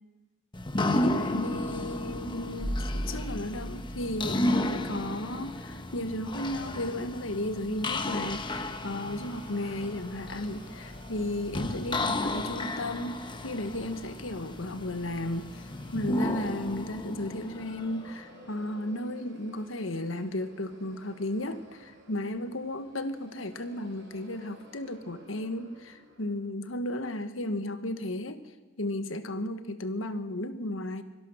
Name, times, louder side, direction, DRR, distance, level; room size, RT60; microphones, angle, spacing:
sound 1, 0.5-18.4, left 1 dB, 25° left, 1.1 m, -33 dB
voice 1, 0.9-15.7 15.9-28.4 28.8-31.0, left 1 dB, 80° left, 10 dB, 1.4 m, -34 dB
sound 2, 8.1-26.3, right 1 dB, 60° right, 5.0 m, -55 dB
24.0 x 17.5 x 6.4 m, 1.2 s
head